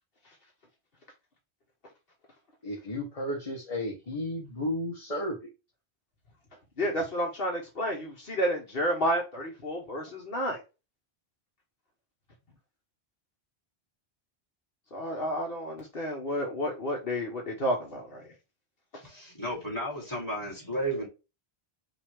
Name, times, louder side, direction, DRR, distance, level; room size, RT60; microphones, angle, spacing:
voice 1, 2.6-5.4, left 1 dB, 35° left, 1.4 m, -33 dB
voice 2, 6.8-10.6 14.9-18.2, equal, 60° left, 1.3 m, -30 dB
voice 3, 19.0-21.1, right 1 dB, 20° left, 2.7 m, -33 dB
5.9 x 2.6 x 3.5 m
omnidirectional pair, 1.1 m